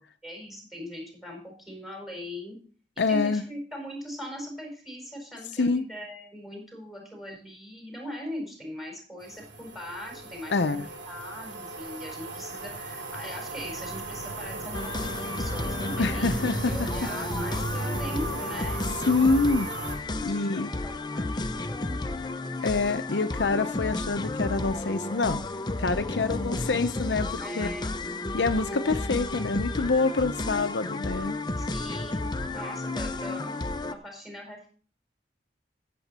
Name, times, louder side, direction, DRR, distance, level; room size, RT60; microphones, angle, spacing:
voice 1, 0.2-2.6 3.0-18.8 20.2-22.0 27.3-28.0 31.6-33.5 33.9-34.7, equal, ahead, 4.7 m, -40 dB
voice 2, 3.0-3.4 5.6-5.8 10.5-10.9 16.0-16.9 19.1-20.7 22.6-25.4 25.8-27.7 28.3-31.4, left 3 dB, 70° left, 0.7 m, -26 dB
sound 1, 9.2-20.0, right 2 dB, 85° right, 3.0 m, -36 dB
sound 2, 14.7-33.9, left 2 dB, 25° left, 0.6 m, -32 dB
14.0 x 7.7 x 4.2 m
head